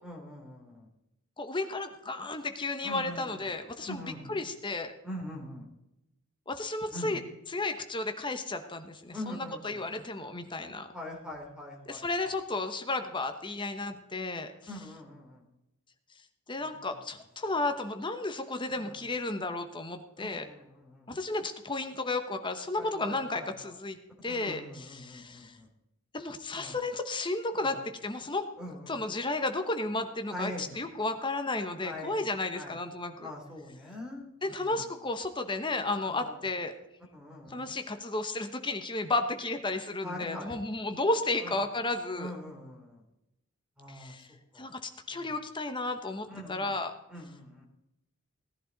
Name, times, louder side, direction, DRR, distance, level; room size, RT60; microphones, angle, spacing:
voice 1, 0.0-0.9 2.8-3.5 3.8-4.4 5.0-5.7 6.9-7.1 9.1-9.8 10.9-12.3 14.7-15.4 16.6-16.7 17.5-17.6 18.7-19.1 20.2-21.1 22.7-23.7 24.3-25.7 26.5-26.8 27.6-27.8 28.6-29.0 30.3-30.7 31.8-32.2 32.5-32.7 33.2-34.9 36.1-36.4 37.1-37.7 40.0-40.5 41.4-41.5 42.1-43.0 43.8-44.1 44.5-44.7 45.1-45.3 46.3-46.7 47.1-47.6, left 1 dB, 5° right, -1 dB, 3.0 m, -43 dB
voice 2, 1.4-4.0 4.3-4.9 6.5-7.2 7.5-10.9 11.9-14.5 16.5-20.5 21.1-24.0 24.2-25.5 26.1-28.4 28.9-33.3 34.4-36.7 37.5-42.3 43.9-44.3 44.6-46.9, left 2 dB, 20° left, 7 dB, 1.0 m, -33 dB
18.0 x 11.0 x 4.0 m, 0.89 s
head